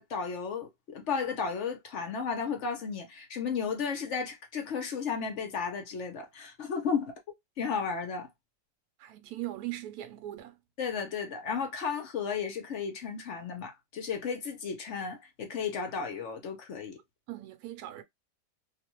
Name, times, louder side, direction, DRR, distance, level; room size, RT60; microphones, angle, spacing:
voice 1, 0.0-7.1 7.6-8.3 10.8-17.0, left 6 dB, 60° left, 0.8 m, -34 dB
voice 2, 9.0-10.6 17.3-18.0, right 15 dB, 70° right, 1.0 m, -39 dB
2.6 x 2.2 x 2.8 m
omnidirectional pair, 1.8 m